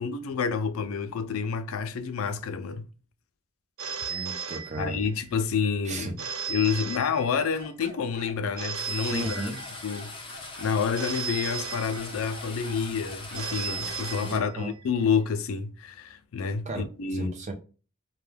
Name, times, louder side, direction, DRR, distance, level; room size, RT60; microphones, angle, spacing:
voice 1, 0.0-2.9 4.1-4.3 4.8-9.6 9.8-17.3, left 6 dB, 85° left, 0.4 m, -29 dB
Telephone, 3.8-5.3 6.2-7.7 8.6-10.1 11.0-12.5 13.3-14.8, right 6 dB, 85° right, 0.5 m, -36 dB
voice 2, 4.1-5.0 5.8-6.1 9.1-9.6 14.2-14.7 16.7-16.8 17.1-17.5, right 2 dB, 35° right, 0.6 m, -34 dB
sound 1, 7.5-14.3, equal, 50° right, 0.9 m, -46 dB
sound 2, 8.7-14.4, left 3 dB, 25° left, 0.6 m, -42 dB
2.2 x 2.2 x 3.2 m
head